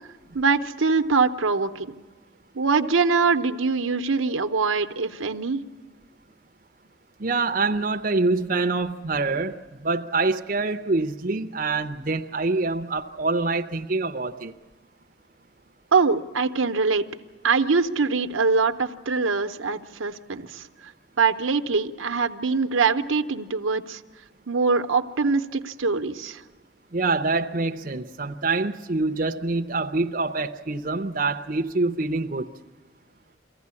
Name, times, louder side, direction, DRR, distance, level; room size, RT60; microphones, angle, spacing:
voice 1, 0.3-1.9 2.5-5.6 15.9-17.0 17.4-20.9 21.2-24.0 24.5-26.4, right 4 dB, 85° right, 0.9 m, -23 dB
voice 2, 7.2-14.5 26.9-32.5, right 3 dB, 40° right, 0.7 m, -25 dB
23.0 x 15.5 x 9.6 m
head